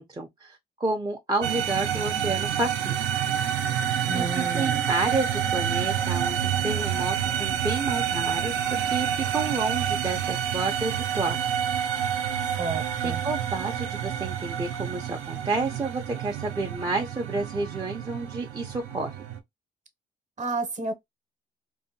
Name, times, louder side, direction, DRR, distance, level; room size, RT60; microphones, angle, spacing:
voice 1, 0.0-3.0 4.1-11.4 13.0-19.2, right 3 dB, 20° right, 0.5 m, -30 dB
sound 1, 1.4-19.4, right 9 dB, 80° right, 0.5 m, -28 dB
voice 2, 4.1-4.9 12.6-13.2 20.4-20.9, right 3 dB, 35° right, 0.8 m, -31 dB
2.6 x 2.1 x 2.6 m
cardioid pair, 90°, 20 cm